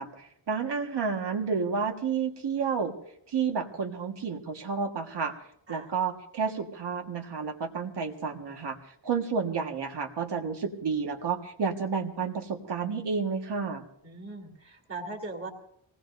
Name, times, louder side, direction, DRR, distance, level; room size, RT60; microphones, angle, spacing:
voice 1, 0.0-3.0 3.3-5.3 5.7-8.8 9.0-13.8, right 5 dB, 55° right, 3 dB, 1.8 m, -30 dB
voice 2, 14.0-15.5, right 2 dB, 30° right, 0 dB, 2.7 m, -39 dB
25.0 x 19.0 x 2.7 m, 0.68 s
wide cardioid pair, 165°, 48 cm